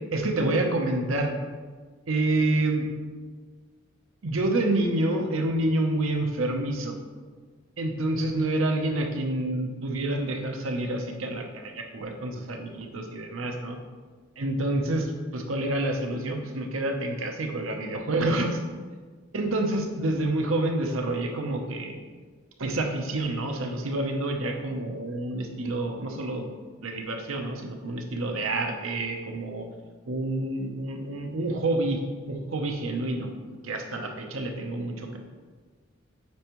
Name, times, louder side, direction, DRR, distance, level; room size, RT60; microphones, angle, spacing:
voice 1, 0.1-1.3 2.1-2.9 4.2-7.0 7.8-13.8 14.4-18.6 19.3-22.0 22.6-29.7 30.1-32.0 32.3-33.3 33.6-35.2, right 2 dB, 85° right, 3 dB, 0.8 m, -28 dB
8.6 x 4.5 x 3.1 m, 1.5 s
head